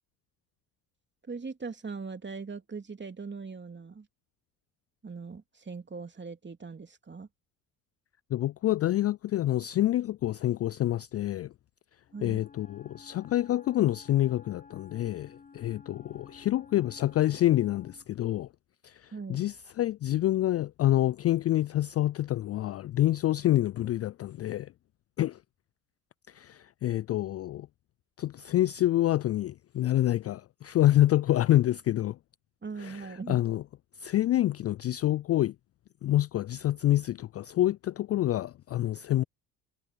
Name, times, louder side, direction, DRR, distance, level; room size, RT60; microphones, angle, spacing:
voice 1, 1.3-4.1 5.0-7.3 12.1-12.4 19.1-19.4 32.6-33.4, right 4 dB, 25° right, 2.8 m, -40 dB
voice 2, 8.3-11.5 12.2-18.5 18.8-24.7 25.2-25.4 26.3-27.7 28.2-32.2 32.8-33.6 34.0-35.6 36.0-39.2, left 14 dB, 35° left, 0.4 m, -27 dB
Wind instrument woodwind instrument, 12.1-18.1, left 5 dB, 20° left, 1.3 m, -53 dB
hypercardioid pair, 60°, 44 cm